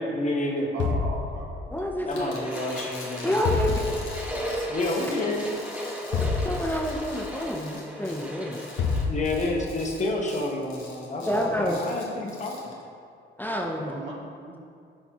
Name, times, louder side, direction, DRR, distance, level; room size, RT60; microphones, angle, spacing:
voice 1, 0.0-1.0 2.0-3.4 4.7-5.5 9.0-12.6, left 2 dB, 35° left, 0 dB, 1.1 m, -29 dB
voice 2, 0.7-1.6 13.7-14.6, right 3 dB, 70° right, -1 dB, 1.3 m, -38 dB
sound 1, 0.8-1.9 3.4-4.4 6.1-7.2 8.8-9.8, left 4 dB, 65° left, 0.6 m, -28 dB
voice 3, 1.7-2.4 3.2-3.9 6.4-8.6 11.2-11.8 13.4-14.0, equal, 10° left, 0 dB, 0.6 m, -28 dB
sound 2, 2.1-12.7, left 3 dB, 90° left, 1.3 m, -45 dB
sound 3, 2.1-9.0, equal, 5° right, 1.0 m, -36 dB
11.0 x 4.2 x 2.9 m, 2.4 s
cardioid pair, 90°, 20 cm